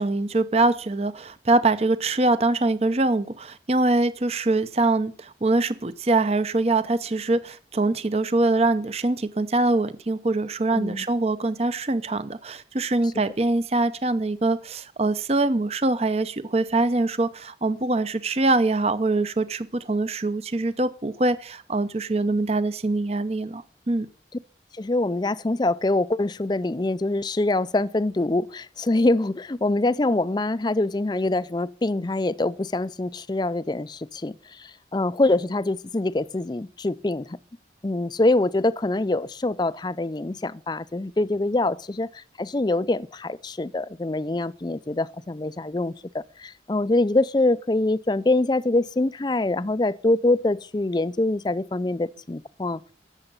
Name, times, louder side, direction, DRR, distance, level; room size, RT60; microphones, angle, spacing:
voice 1, 0.0-24.1, right 2 dB, 35° right, 0.7 m, -23 dB
voice 2, 10.7-11.0 24.7-37.4 37.8-52.8, left 2 dB, 25° left, 0.4 m, -24 dB
15.5 x 7.1 x 5.5 m
head